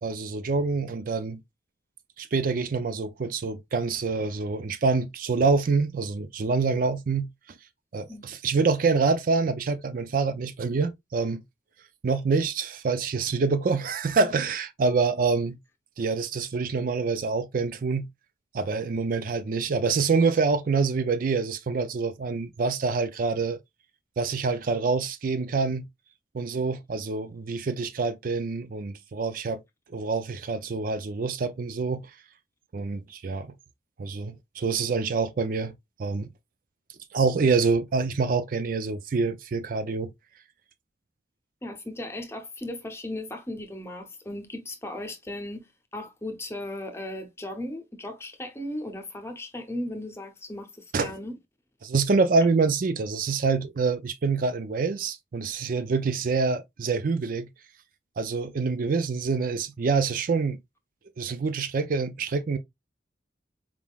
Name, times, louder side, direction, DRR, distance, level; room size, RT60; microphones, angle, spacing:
voice 1, 0.0-1.4 2.2-7.3 7.9-11.4 12.0-15.6 16.0-18.1 18.5-23.6 24.2-25.9 26.3-29.6 29.9-32.1 32.7-33.5 34.0-35.7 36.0-36.3 37.1-40.1 50.9-51.1 51.8-57.5 58.2-60.6 61.2-62.6, right 4 dB, 50° right, 0.4 m, -26 dB
voice 2, 41.6-51.4, left 1 dB, 15° left, 0.8 m, -36 dB
4.6 x 3.6 x 2.3 m
head